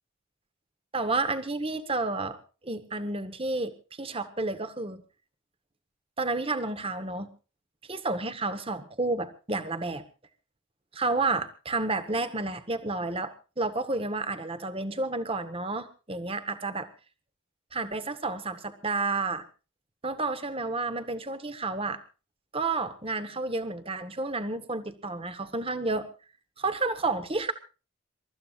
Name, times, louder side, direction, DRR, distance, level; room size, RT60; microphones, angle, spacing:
voice 1, 0.9-2.4 2.6-5.0 6.2-7.3 7.9-10.0 10.9-16.9 17.7-19.4 20.0-22.0 22.5-26.1 26.6-27.5, right 3 dB, 25° right, 11 dB, 1.1 m, -31 dB
27.5 x 14.0 x 2.4 m, 0.34 s
head